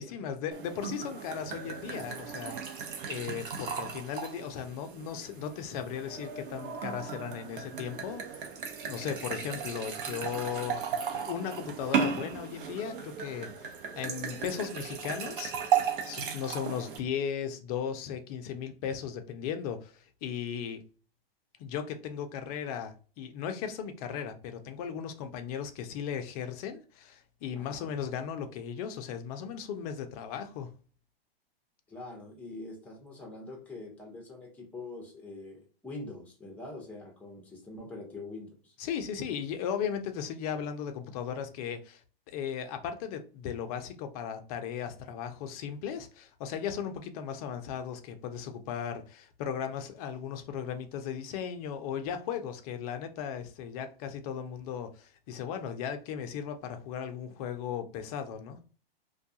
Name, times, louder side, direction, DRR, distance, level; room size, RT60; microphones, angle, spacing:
voice 1, 0.0-8.2 8.8-20.8 21.6-30.7 38.8-42.0 42.3-58.6, left 8 dB, 40° left, 0.5 m, -37 dB
sound 1, 0.5-17.0, right 7 dB, 60° right, 0.8 m, -35 dB
voice 2, 27.5-27.9 31.9-38.7, left 2 dB, 5° left, 0.7 m, -44 dB
2.3 x 2.2 x 2.7 m
hypercardioid pair, 125°, 30 cm